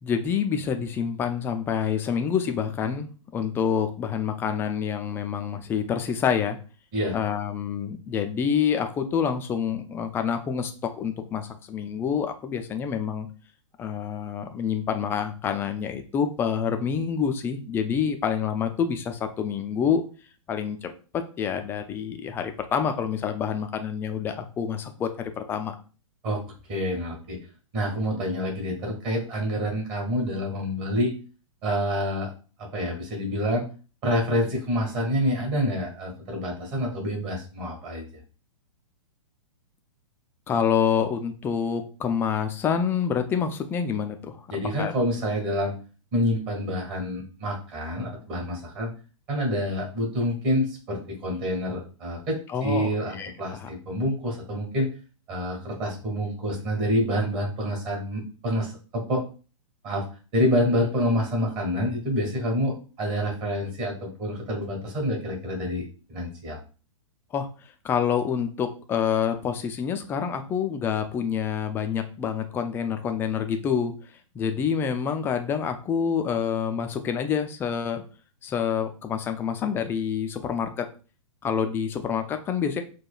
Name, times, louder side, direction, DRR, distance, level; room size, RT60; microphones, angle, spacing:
voice 1, 0.0-6.6 7.1-10.7 11.0-13.3 13.8-20.0 20.5-25.1 25.4-25.8 40.5-44.4 44.8-44.9 52.5-53.7 67.3-67.5 67.8-73.9 74.3-78.0 78.4-80.9 81.4-82.8, left 7 dB, 15° left, 6 dB, 0.3 m, -27 dB
voice 2, 26.7-27.4 27.7-31.1 31.6-32.3 32.7-33.6 34.0-38.0 44.5-45.7 46.1-48.9 49.3-54.9 55.3-59.2 59.8-60.0 60.3-66.6, equal, 35° right, 0 dB, 1.7 m, -27 dB
4.7 x 2.2 x 2.3 m, 0.36 s
figure-of-eight pair, 115°, 17 cm